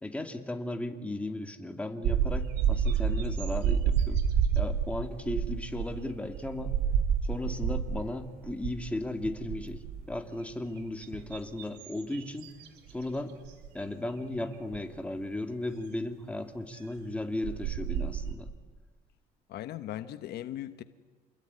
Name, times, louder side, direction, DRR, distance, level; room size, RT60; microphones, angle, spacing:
voice 1, 0.0-4.2 4.6-6.7 7.2-12.5 12.9-13.4 13.7-18.5, left 1 dB, 5° left, 2.5 m, -36 dB
sound 1, 2.0-8.1 8.4-8.8 9.2-10.2 10.8-13.0 13.4-13.7 14.7-14.8 17.0-17.1 17.4-18.3, right 7 dB, 85° right, 3.1 m, -29 dB
voice 2, 19.5-20.8, left 12 dB, 75° left, 1.1 m, -38 dB
28.0 x 21.0 x 9.8 m
cardioid pair, 110°, 17 cm